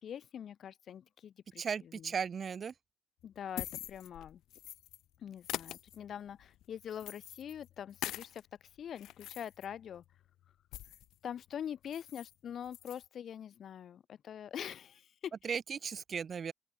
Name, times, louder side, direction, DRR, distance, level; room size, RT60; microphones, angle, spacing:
voice 1, 0.0-2.1 3.2-4.4 5.2-8.4 8.8-10.0 11.2-15.5, left 9 dB, 50° left, 2.1 m, -44 dB
voice 2, 1.6-2.7 15.4-16.5, right 6 dB, 35° right, 2.0 m, -36 dB
sound 1, 3.2-5.0 5.4-8.4 8.8-11.2 11.5-11.6 11.8-12.3 12.6-13.0, left 14 dB, 90° left, 1.8 m, -45 dB
open air
cardioid pair, 155°, 0 cm